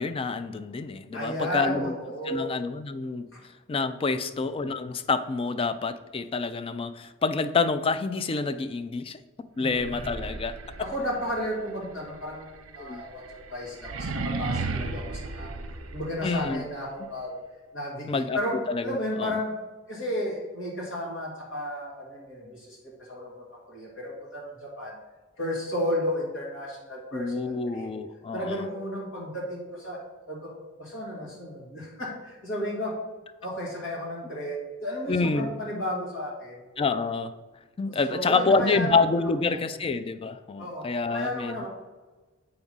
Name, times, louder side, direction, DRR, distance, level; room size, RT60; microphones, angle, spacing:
voice 1, 0.0-1.9 2.2-3.3 3.7-9.2 9.6-10.6 12.8-13.0 16.2-16.6 18.1-19.4 27.1-28.7 35.1-35.5 36.8-37.3 37.8-41.7, left 4 dB, 25° left, 11 dB, 0.3 m, -27 dB
voice 2, 1.1-2.5 3.3-3.4 4.3-4.4 9.6-10.2 10.8-15.5 15.9-17.3 17.7-18.6 18.8-19.5 19.9-22.8 23.1-24.9 25.4-27.9 28.3-30.0 30.3-30.5 30.8-33.0 33.4-36.6 37.9-39.6 40.6-41.7, equal, 60° left, -4 dB, 2.3 m, -33 dB
sound 1, 9.6-16.5, right 3 dB, 75° right, 0.7 m, -35 dB
7.8 x 3.6 x 5.4 m, 1.3 s
head